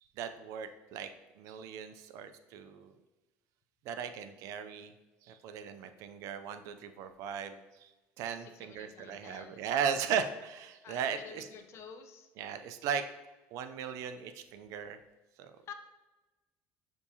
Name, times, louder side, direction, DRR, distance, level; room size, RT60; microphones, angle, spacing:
voice 1, 0.2-1.1 1.4-2.9 3.9-4.9 5.2-7.9 8.2-11.5 12.4-13.0 13.5-15.0 15.4-15.5, right 7 dB, 65° right, 10 dB, 0.4 m, -37 dB
voice 2, 8.3-10.0 10.8-12.3 15.7-15.8, left 6 dB, 50° left, 7 dB, 0.5 m, -50 dB
6.7 x 2.8 x 2.8 m, 1.1 s
supercardioid pair, 100°, 6 cm